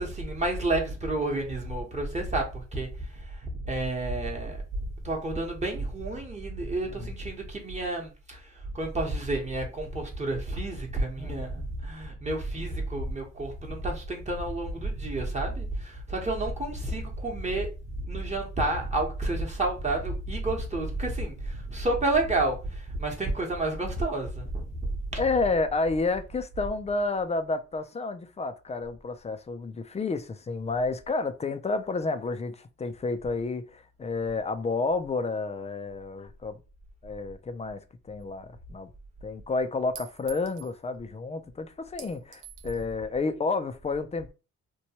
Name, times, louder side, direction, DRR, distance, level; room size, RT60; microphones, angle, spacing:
voice 1, 0.0-4.6 5.0-8.4 8.7-17.7 18.0-24.7 25.1-25.2, right 2 dB, 25° right, 1.0 m, -30 dB
voice 2, 11.2-11.6 25.2-36.6 37.0-37.8 38.1-38.9 39.2-44.3, left 3 dB, 20° left, 0.4 m, -30 dB
Chink clink, 38.2-38.3 40.0-40.8 42.0-42.9, right 10 dB, 85° right, 0.6 m, -46 dB
3.0 x 2.2 x 2.8 m
cardioid pair, 90°, 30 cm